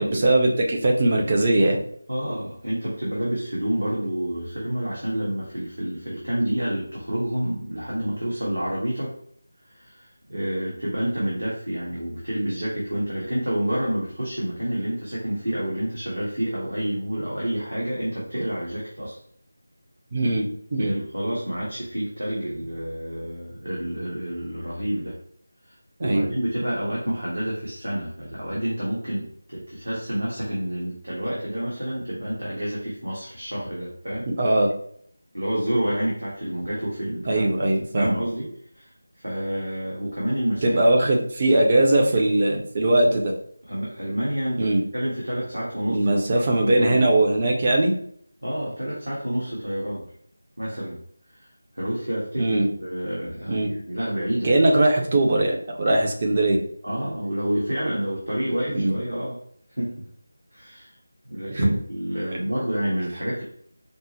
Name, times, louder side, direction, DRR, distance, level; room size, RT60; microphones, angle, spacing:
voice 1, 0.0-1.8 20.1-20.9 26.0-26.3 34.4-34.7 37.3-38.2 40.6-43.3 44.6-44.8 45.9-48.0 52.4-52.7 53.5-53.7 54.4-56.6 58.7-58.9 61.5-61.7, right 1 dB, 30° right, 1 dB, 0.7 m, -20 dB
voice 2, 2.1-9.1 9.7-19.2 20.8-25.1 25.7-25.8 26.0-34.3 35.3-37.5 38.0-38.5 38.7-38.9 39.2-40.8 43.7-47.1 48.4-50.0 50.6-51.0 51.3-51.5 51.8-54.5 56.8-59.4 59.8-60.0 60.5-60.9 61.3-63.4, right 1 dB, 70° right, -6 dB, 1.4 m, -28 dB
5.3 x 2.1 x 3.0 m, 0.64 s
figure-of-eight pair, 165°, 0 cm